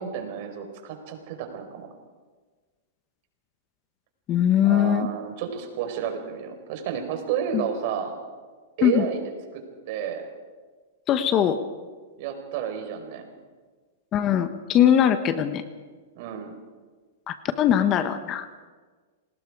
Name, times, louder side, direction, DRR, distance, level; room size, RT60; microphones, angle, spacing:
voice 1, 0.0-1.9 4.6-8.1 8.8-9.2 9.5-10.3 12.2-13.3 16.1-16.5, right 8 dB, 55° right, 5 dB, 4.6 m, -31 dB
voice 2, 4.3-5.1 7.5-7.6 8.8-9.1 11.1-11.6 14.1-15.6 17.3-18.5, left 10 dB, 30° left, 10 dB, 1.4 m, -21 dB
27.5 x 19.5 x 4.9 m, 1.4 s
hypercardioid pair, 130°, 0 cm